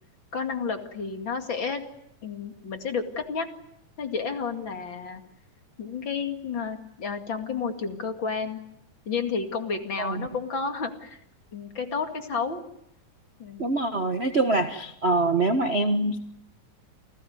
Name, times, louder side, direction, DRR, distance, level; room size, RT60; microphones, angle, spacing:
voice 1, 0.3-1.8 2.2-3.5 4.0-5.2 5.8-8.6 9.1-11.2 11.5-12.6 13.4-13.7, left 5 dB, 40° left, 5 dB, 2.7 m, -31 dB
voice 2, 13.6-16.2, right 2 dB, 50° right, 7 dB, 0.7 m, -24 dB
28.5 x 19.0 x 9.5 m, 0.77 s
omnidirectional pair, 3.6 m